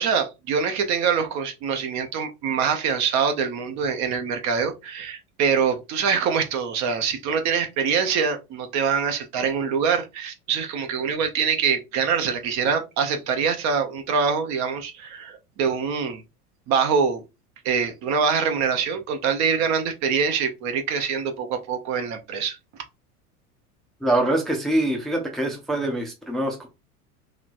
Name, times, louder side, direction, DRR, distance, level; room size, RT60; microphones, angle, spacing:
voice 1, 0.0-16.2 16.7-17.2 17.6-22.6, right 6 dB, 40° right, 0.6 m, -24 dB
voice 2, 24.0-26.7, right 1 dB, ahead, 0.5 m, -24 dB
3.1 x 2.9 x 2.5 m
hypercardioid pair, 90°, 45 cm